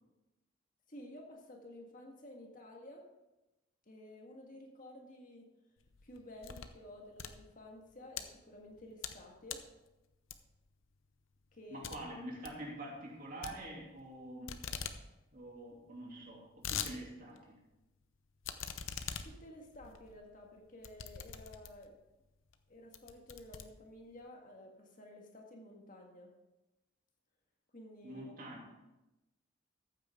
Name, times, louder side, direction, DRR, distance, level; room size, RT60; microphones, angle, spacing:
voice 1, 0.9-3.1 3.9-5.5 6.0-9.6 11.5-11.9 19.2-22.0 22.7-26.3 27.7-28.4, left 1 dB, 40° left, 1 dB, 1.8 m, -52 dB
sound 1, 5.8-6.8 7.1-8.2 8.7-9.2 9.5-9.7 10.3-10.7 11.0-11.1 11.4-11.5 11.8-12.0 12.3-12.6 13.4-14.2 14.5-15.0 15.3-15.4 15.6-15.7 16.2-16.9 17.4-17.5 18.4-21.9 22.5-22.6 22.9-24.2, left 8 dB, 85° left, 0.8 m, -43 dB
voice 2, 11.7-14.5 15.3-17.6 28.0-28.6, right 1 dB, 45° right, -2 dB, 2.9 m, -46 dB
14.0 x 8.8 x 3.7 m, 0.99 s
head